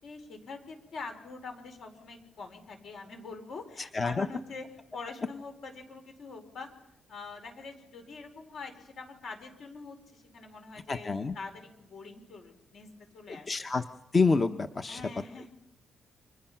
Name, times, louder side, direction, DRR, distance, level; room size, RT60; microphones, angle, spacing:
voice 1, 0.0-4.7 4.9-6.7 7.1-11.1 11.3-12.9 13.1-13.5 14.9-15.5, left 4 dB, 65° left, 5 dB, 5.0 m, -44 dB
voice 2, 3.8-4.3 10.9-11.3 13.3-13.8 14.1-15.0, left 4 dB, 30° left, 8 dB, 0.8 m, -28 dB
29.5 x 25.0 x 5.8 m, 0.92 s
cardioid pair, 130°, 0 cm